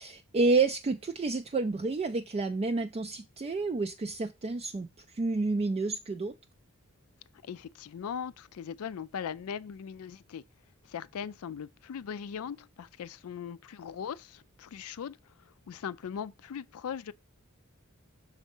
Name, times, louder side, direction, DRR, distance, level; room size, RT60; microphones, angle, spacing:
voice 1, 0.0-6.3, right 3 dB, 25° right, 0.3 m, -29 dB
voice 2, 7.4-10.4 10.9-15.2 15.4-17.1, left 7 dB, 70° left, 0.4 m, -39 dB
6.3 x 3.5 x 5.3 m
head